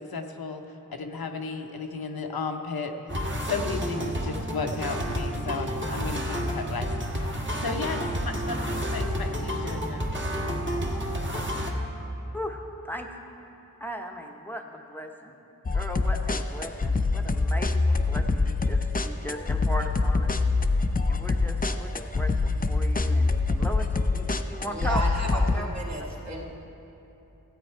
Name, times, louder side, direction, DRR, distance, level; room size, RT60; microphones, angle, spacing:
voice 1, 0.0-6.9 7.6-10.1, left 4 dB, 80° left, 4 dB, 0.8 m, -34 dB
sound 1, 3.1-11.7, equal, 30° right, 1.3 m, -30 dB
voice 2, 12.3-13.1 13.8-15.3 15.7-20.5 21.1-26.0, equal, 5° left, 2 dB, 0.8 m, -37 dB
sound 2, 15.7-25.6, left 3 dB, 25° left, 0.5 m, -25 dB
voice 3, 24.7-26.4, right 1 dB, 50° right, -3 dB, 2.0 m, -33 dB
14.0 x 8.3 x 4.5 m, 3.0 s
cardioid pair, 45°, 36 cm